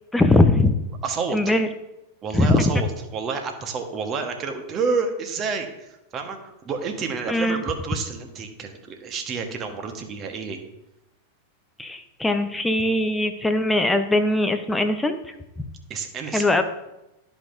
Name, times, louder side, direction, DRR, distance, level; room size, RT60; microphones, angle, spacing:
voice 1, 0.1-0.7 1.3-1.7 2.3-2.7 7.3-7.6 11.8-15.2 16.3-16.6, left 2 dB, 5° left, 7 dB, 0.8 m, -20 dB
voice 2, 1.0-1.5 2.2-10.6 15.9-16.5, right 5 dB, 30° right, 5 dB, 1.3 m, -29 dB
13.0 x 5.2 x 2.7 m, 0.94 s
figure-of-eight pair, 90°, 0 cm